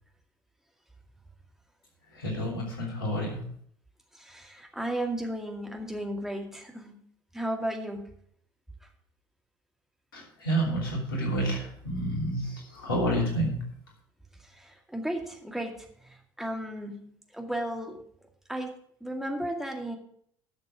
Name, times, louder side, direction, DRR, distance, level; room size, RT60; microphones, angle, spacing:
voice 1, 2.2-3.4 10.1-13.6, right 1 dB, 80° left, 0 dB, 2.9 m, -29 dB
voice 2, 4.1-7.0 7.3-8.1 14.4-18.0 18.5-18.7 19.0-20.0, right 1 dB, 5° right, 3 dB, 2.2 m, -34 dB
11.5 x 6.6 x 6.2 m, 0.64 s
figure-of-eight pair, 60°, 12 cm